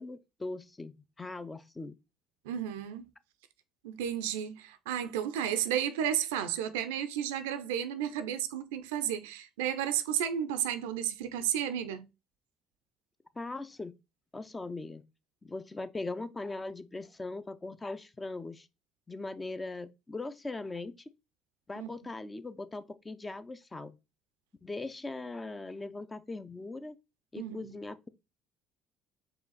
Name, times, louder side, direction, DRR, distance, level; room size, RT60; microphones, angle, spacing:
voice 1, 0.0-2.0 13.4-14.0 14.3-15.0 15.4-18.7 19.1-21.0 21.7-24.0 24.6-27.0 27.3-28.1, left 3 dB, 20° left, 0.5 m, -40 dB
voice 2, 2.5-3.1 3.8-12.1 21.8-21.9 27.4-27.7, right 10 dB, 80° right, 0.5 m, -33 dB
4.8 x 2.4 x 3.9 m
hypercardioid pair, 60°, 0 cm